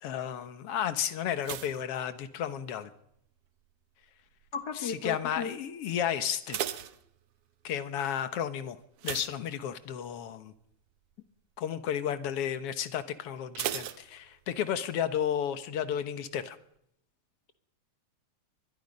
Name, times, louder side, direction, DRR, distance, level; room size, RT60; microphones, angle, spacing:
voice 1, 0.0-2.9 4.8-6.6 7.6-8.8 9.0-10.5 11.6-16.6, left 9 dB, 60° left, 11 dB, 1.9 m, -33 dB
sound 1, 1.4-2.9 3.1-3.7 4.3-4.6 4.9-5.0 5.4-5.5 6.2-7.7 9.0-10.1 10.5-10.7 11.1-11.2 13.5-14.8 15.0-15.1, right 11 dB, 65° right, 1.6 m, -38 dB
voice 2, 4.5-5.5, left 5 dB, 45° left, 8 dB, 1.5 m, -35 dB
24.0 x 20.5 x 5.4 m, 0.74 s
omnidirectional pair, 3.5 m